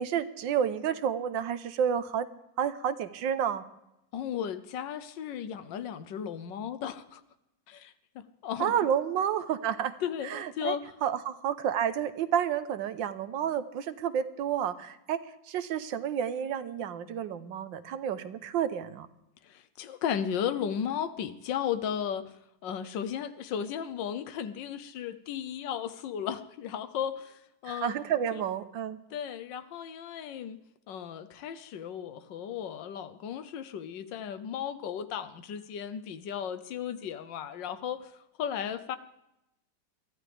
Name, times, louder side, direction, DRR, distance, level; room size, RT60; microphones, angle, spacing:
voice 1, 0.0-2.3 2.6-3.6 8.6-9.9 10.2-15.2 15.5-19.1 27.7-29.0, right 9 dB, 90° right, 12 dB, 1.6 m, -30 dB
voice 2, 4.1-7.2 7.7-8.7 10.0-10.8 19.4-22.3 22.6-28.0 28.3-28.4 29.1-30.6 30.9-38.1 38.4-39.0, left 8 dB, 80° left, 12 dB, 1.5 m, -35 dB
22.5 x 15.0 x 3.5 m, 0.87 s
omnidirectional pair, 2.0 m